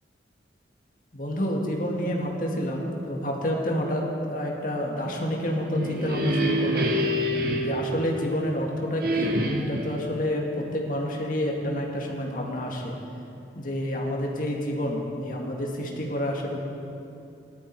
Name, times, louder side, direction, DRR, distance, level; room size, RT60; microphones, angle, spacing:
voice 1, 1.1-7.1 7.6-12.9 13.6-16.6, equal, 50° left, -1 dB, 2.1 m, -29 dB
sound 1, 5.5-8.5 9.0-10.0, equal, 55° right, 1.2 m, -27 dB
18.5 x 12.0 x 4.8 m, 2.8 s
head